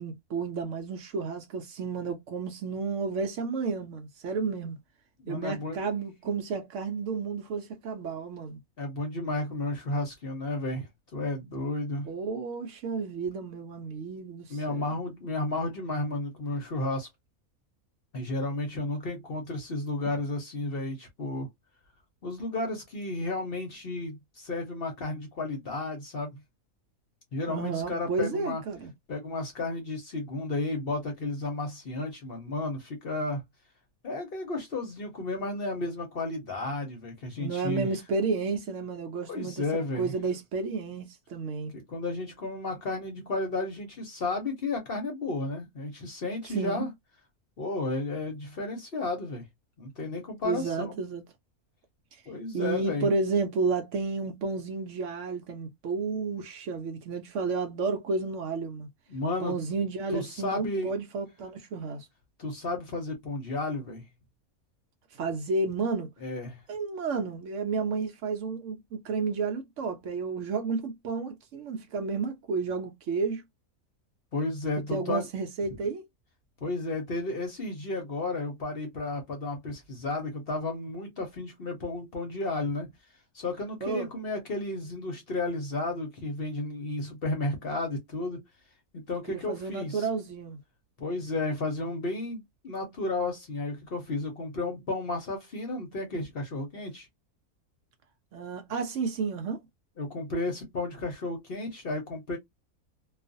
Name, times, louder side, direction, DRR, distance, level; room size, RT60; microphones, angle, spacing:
voice 1, 0.0-4.8 5.3-8.6 12.1-15.0 27.5-28.9 37.4-39.6 39.9-41.7 46.4-46.8 50.4-51.2 52.5-58.9 59.4-62.1 65.1-66.1 66.7-73.4 74.9-76.0 83.8-84.1 89.3-90.6 98.3-99.6, right 4 dB, 65° right, 0.8 m, -31 dB
voice 2, 5.2-5.8 8.8-12.1 14.5-17.1 18.1-21.5 22.2-26.4 27.3-28.6 29.1-33.4 34.0-37.9 39.3-40.1 41.7-46.9 47.6-49.4 49.8-51.0 52.3-53.1 59.1-59.5 60.1-60.9 62.4-64.0 66.2-66.6 74.3-75.3 76.6-82.9 83.3-88.4 88.9-90.1 91.0-97.1 100.0-102.4, left 2 dB, 50° left, 0.8 m, -33 dB
2.4 x 2.3 x 2.5 m
omnidirectional pair, 1.5 m